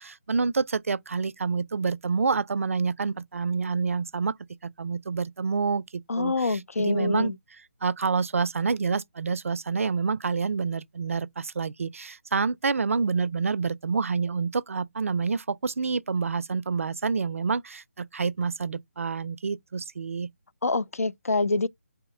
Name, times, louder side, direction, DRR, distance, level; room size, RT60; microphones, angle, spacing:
voice 1, 0.0-4.3 4.8-5.8 6.2-7.3 7.8-20.3, right 5 dB, 65° right, 0.4 m, -28 dB
voice 2, 6.1-7.4 20.6-21.7, left 3 dB, 80° left, 0.4 m, -26 dB
4.1 x 2.9 x 3.6 m
figure-of-eight pair, 155°, 8 cm